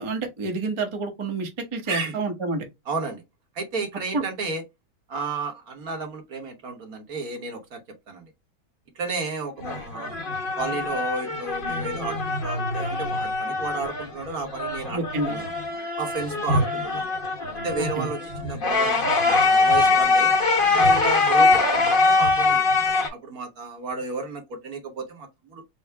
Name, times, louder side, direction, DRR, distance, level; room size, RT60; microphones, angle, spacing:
voice 1, 0.0-2.6 4.1-4.2 14.9-15.4 17.8-18.1, right 3 dB, 25° right, 0.7 m, -28 dB
voice 2, 1.9-2.2 2.9-3.2 3.5-4.6 5.1-7.8 8.1-8.2 8.9-10.2 10.6-15.5 16.0-17.1 17.6-20.3 20.7-22.6 23.1-25.6, right 3 dB, 60° right, 1.5 m, -32 dB
sound 1, 9.6-14.2 14.5-23.1, left 3 dB, 35° left, 1.1 m, -23 dB
4.6 x 2.0 x 4.5 m
omnidirectional pair, 1.9 m